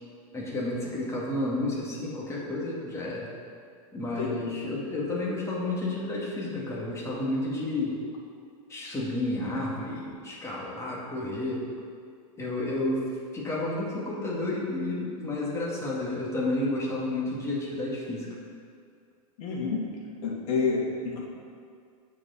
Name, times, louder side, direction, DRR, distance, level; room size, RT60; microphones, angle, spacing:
voice 1, 0.3-3.3 3.9-8.0 8.7-11.7 12.4-18.3, left 2 dB, 15° left, -5 dB, 2.1 m, -31 dB
voice 2, 19.4-19.9 20.2-21.2, left 5 dB, 65° left, -3 dB, 2.3 m, -28 dB
8.3 x 4.8 x 6.5 m, 2.2 s
supercardioid pair, 130°, 19 cm